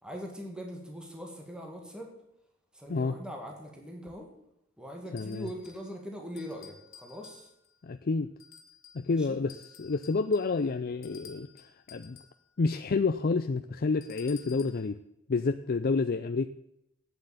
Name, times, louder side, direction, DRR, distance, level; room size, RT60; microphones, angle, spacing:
voice 1, 0.0-2.1 2.7-4.3 4.8-7.5 9.1-9.4, equal, 5° right, 1 dB, 1.8 m, -42 dB
voice 2, 5.1-5.5 7.8-8.3 8.9-11.5 11.9-12.2 12.6-15.0 15.3-16.5, left 4 dB, 50° left, 9 dB, 0.5 m, -29 dB
sound 1, 5.2-5.9 6.4-7.8 8.4-9.1 9.5-12.4 14.0-14.9, left 7 dB, 75° left, 1.7 m, -53 dB
9.0 x 7.8 x 8.9 m, 0.80 s
head